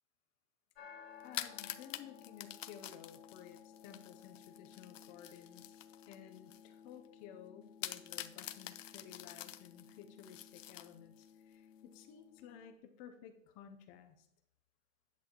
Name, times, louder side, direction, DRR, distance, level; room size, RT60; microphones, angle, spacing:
sound 1, 0.7-12.7, left 7 dB, 50° left, 1.3 m, -58 dB
sound 2, 1.2-6.7 7.1-7.2 7.8-11.3, left 11 dB, 70° left, 0.8 m, -47 dB
voice 1, 1.2-14.3, left 9 dB, 20° left, 7 dB, 0.5 m, -55 dB
10.5 x 8.5 x 2.9 m, 0.76 s
hypercardioid pair, 140°, 40 cm